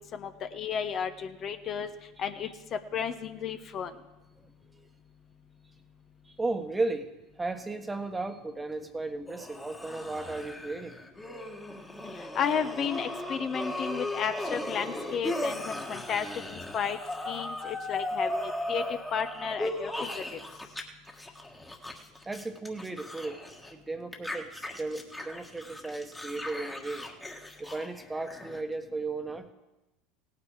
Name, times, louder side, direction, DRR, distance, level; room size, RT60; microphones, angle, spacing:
voice 1, 0.1-1.9 2.2-2.5 2.9-3.9 12.3-17.0 17.3-20.2, left 7 dB, 45° left, 8 dB, 0.9 m, -33 dB
voice 2, 4.4-4.9 6.2-7.1 7.4-11.0 22.2-23.4 23.7-27.1 27.6-29.5, right 3 dB, 15° right, 7 dB, 1.2 m, -35 dB
sound 1, 9.3-20.8 21.1-23.7 24.1-28.6, left 1 dB, 10° left, 1.6 m, -37 dB
17.0 x 8.9 x 4.8 m, 1.0 s
hypercardioid pair, 85°, 0 cm